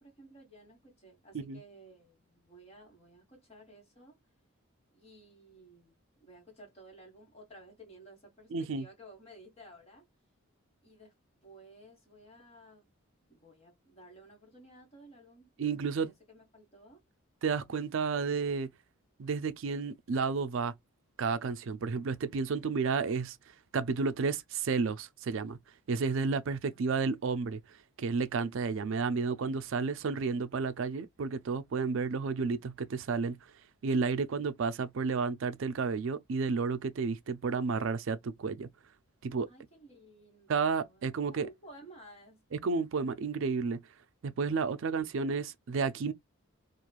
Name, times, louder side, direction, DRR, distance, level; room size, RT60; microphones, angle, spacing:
voice 1, 0.0-4.2 4.9-10.0 10.8-11.2 11.4-12.9 13.3-17.0 26.6-27.1 39.5-42.4, right 1 dB, 30° left, 1.6 m, -55 dB
voice 2, 8.5-8.9 15.6-16.1 17.4-18.7 19.2-20.7 21.2-23.4 23.7-25.6 25.9-27.6 28.0-33.4 33.8-38.7 39.2-39.5 40.5-41.5 42.5-43.8 44.2-46.1, right 4 dB, 60° right, 0.4 m, -31 dB
3.1 x 2.4 x 2.2 m
head